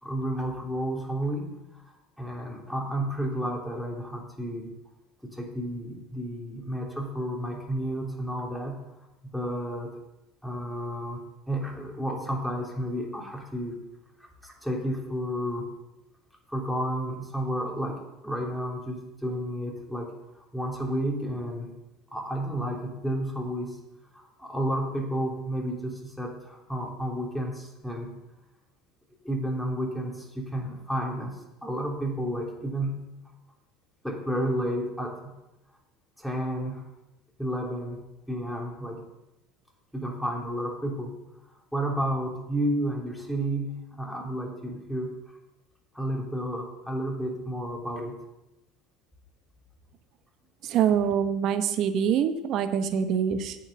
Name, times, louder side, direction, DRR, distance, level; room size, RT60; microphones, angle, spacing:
voice 1, 0.0-4.7 5.3-8.8 9.3-10.0 10.4-13.8 14.2-15.7 16.5-21.7 22.1-23.8 24.1-28.1 29.2-33.0 34.0-35.3 36.2-36.8 37.4-38.0 38.3-39.0 39.9-41.1 41.7-45.4 45.9-48.2, equal, ahead, -1 dB, 3.4 m, -31 dB
voice 2, 50.7-53.6, right 8 dB, 50° right, 10 dB, 1.1 m, -25 dB
9.3 x 7.4 x 6.6 m, 0.96 s
hypercardioid pair, 70°, 0 cm